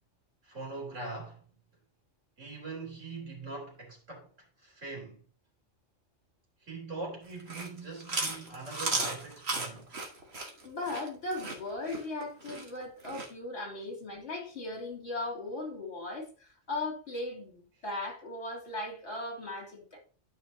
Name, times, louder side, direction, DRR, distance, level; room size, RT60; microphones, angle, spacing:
voice 1, 0.4-1.5 2.4-5.2 6.6-10.0, right 3 dB, 80° right, 3.4 m, -42 dB
Chewing mastication, 7.3-13.3, right 2 dB, 60° right, 1.8 m, -35 dB
voice 2, 10.6-20.0, left 2 dB, 65° left, 3.2 m, -38 dB
12.0 x 5.5 x 2.8 m
omnidirectional pair, 1.3 m